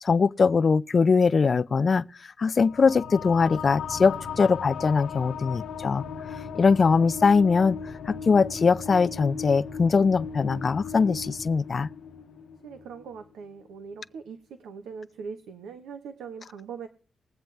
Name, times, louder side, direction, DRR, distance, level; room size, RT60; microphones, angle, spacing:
voice 1, 0.0-2.0 2.4-6.0 6.5-7.8 8.1-11.9, left 5 dB, 55° left, 0.4 m, -21 dB
sound 1, 2.6-13.5, left 6 dB, 80° left, 1.1 m, -37 dB
voice 2, 12.6-16.9, right 6 dB, 90° right, 0.8 m, -41 dB
21.0 x 7.7 x 3.2 m
supercardioid pair, 50°, 0 cm